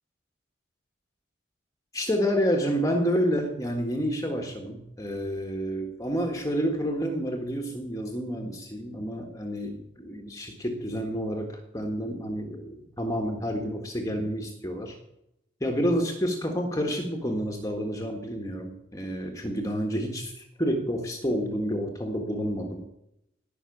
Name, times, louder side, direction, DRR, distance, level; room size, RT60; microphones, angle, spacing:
voice 1, 1.9-15.0 15.6-22.8, equal, 15° left, 2 dB, 1.6 m, -29 dB
18.5 x 6.2 x 8.4 m, 0.85 s
head